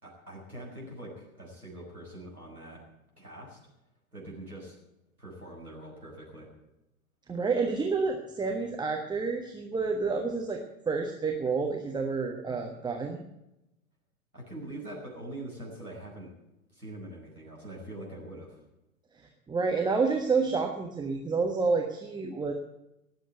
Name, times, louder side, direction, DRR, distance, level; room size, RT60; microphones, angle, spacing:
voice 1, 0.0-2.8 3.2-3.6 4.1-4.7 5.2-6.5 14.3-16.3 16.7-18.6, right 1 dB, 90° right, -3 dB, 6.6 m, -43 dB
voice 2, 7.3-10.6 10.9-13.2 19.5-22.5, right 4 dB, 10° right, 2 dB, 1.4 m, -29 dB
18.5 x 7.9 x 9.1 m, 0.90 s
figure-of-eight pair, 95°, 43 cm